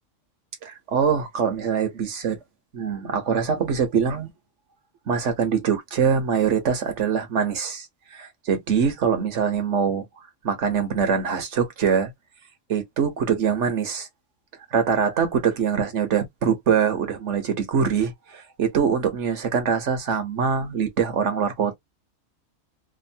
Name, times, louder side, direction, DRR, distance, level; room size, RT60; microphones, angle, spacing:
voice 1, 0.6-2.4 2.7-4.3 5.1-7.9 8.1-10.1 10.4-12.1 12.7-14.1 14.7-21.8, right 6 dB, 65° right, 1.2 m, -23 dB
2.9 x 2.6 x 2.6 m
omnidirectional pair, 1.4 m